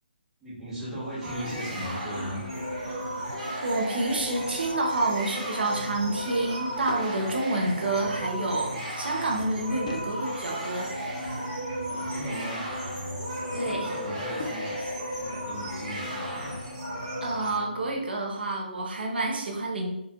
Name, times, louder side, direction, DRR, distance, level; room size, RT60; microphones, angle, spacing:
voice 1, 0.4-2.4 11.9-12.7 13.3-14.7 15.1-16.6, equal, 5° right, -10 dB, 0.8 m, -38 dB
sound 1, 0.7-18.0, left 1 dB, 60° left, 1.1 m, -40 dB
sound 2, 1.2-17.5, right 1 dB, 35° right, 1.1 m, -35 dB
voice 2, 3.6-10.9 13.5-13.9 17.2-19.9, right 2 dB, 65° right, 1 dB, 0.9 m, -28 dB
Drawer open or close / Wood, 6.2-7.1 8.8-10.1 10.7-11.8 13.2-14.7, left 3 dB, 40° left, 0.4 m, -44 dB
4.0 x 2.4 x 2.8 m, 0.84 s
hypercardioid pair, 175°, 6 cm